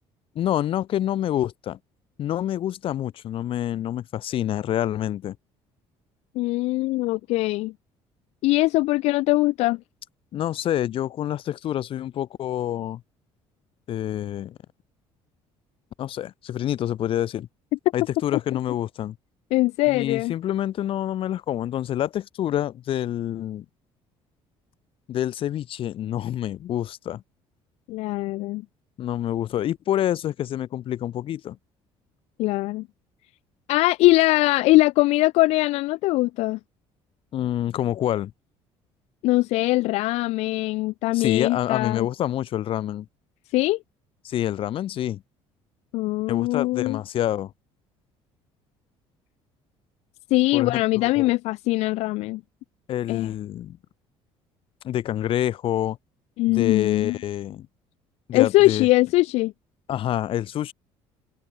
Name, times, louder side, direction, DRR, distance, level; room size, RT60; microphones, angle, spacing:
voice 1, 0.4-1.8 2.2-5.4 10.3-13.0 13.9-14.6 16.0-17.5 17.9-19.2 19.9-23.7 25.1-27.2 29.0-31.6 37.3-38.3 41.1-43.1 44.2-45.2 46.3-47.5 50.5-51.3 52.9-53.8 54.8-56.0 56.5-57.7 58.3-58.9 59.9-60.7, left 11 dB, 55° left, 1.7 m, -27 dB
voice 2, 6.4-7.7 8.4-9.8 19.5-20.3 27.9-28.6 32.4-32.9 33.7-36.6 39.2-42.1 43.5-43.8 45.9-47.0 50.3-52.4 53.1-53.3 56.4-57.2 58.3-59.5, left 19 dB, 75° left, 0.4 m, -21 dB
cardioid pair, 125°, 11 cm